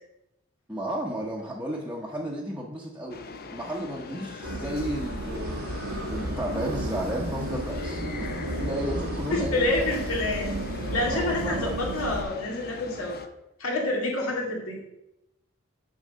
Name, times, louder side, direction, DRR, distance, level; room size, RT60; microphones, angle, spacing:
voice 1, 0.7-3.2 3.5-10.0 11.0-11.8, equal, 5° right, -4 dB, 0.8 m, -33 dB
sound 1, 3.1-13.3, left 4 dB, 45° left, 0.6 m, -42 dB
sound 2, 4.4-12.2, right 1 dB, 80° right, 1.0 m, -33 dB
voice 2, 9.3-10.6 10.9-13.2 13.6-14.9, left 2 dB, 85° left, -1 dB, 2.1 m, -28 dB
6.4 x 4.7 x 6.5 m, 0.86 s
head